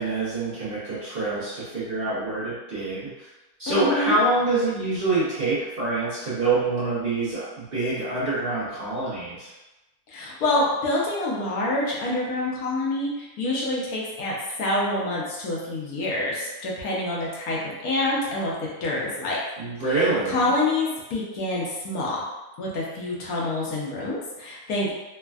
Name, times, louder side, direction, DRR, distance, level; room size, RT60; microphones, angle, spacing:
voice 1, 0.0-3.1 3.6-9.5 19.6-20.5, right 2 dB, 45° right, -11 dB, 0.8 m, -26 dB
voice 2, 3.7-4.3 10.1-18.5 18.8-19.4 19.8-22.2 22.6-24.9, left 2 dB, 70° left, -4 dB, 1.1 m, -27 dB
3.3 x 2.1 x 2.3 m, 1.0 s
omnidirectional pair, 1.7 m